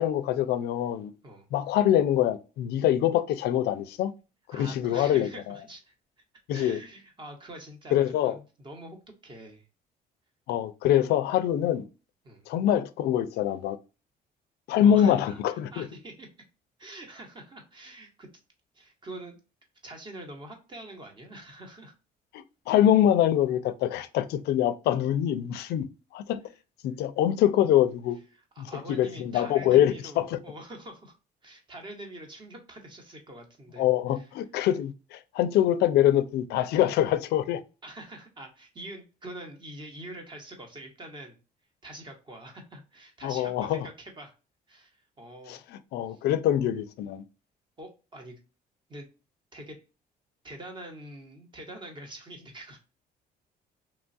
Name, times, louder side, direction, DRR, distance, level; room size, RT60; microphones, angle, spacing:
voice 1, 0.0-1.1 1.5-4.1 4.5-5.6 6.5-6.8 7.9-8.4 10.5-11.9 12.5-13.8 14.7-15.9 22.3-25.9 26.1-26.4 26.8-28.2 28.6-30.4 33.8-37.6 43.2-43.9 45.5-47.2, left 11 dB, 80° left, 0.4 m, -24 dB
voice 2, 4.5-5.9 6.5-9.0 9.2-9.7 12.2-12.5 14.8-16.3 16.8-18.3 18.7-19.4 19.8-21.9 28.3-31.1 31.4-34.3 37.8-41.4 41.8-44.3 44.7-45.6 46.1-46.2 47.8-48.4 48.9-49.1 49.5-49.8 50.4-52.8, right 1 dB, 30° right, 0.9 m, -45 dB
3.1 x 2.3 x 2.5 m
cardioid pair, 135°, 16 cm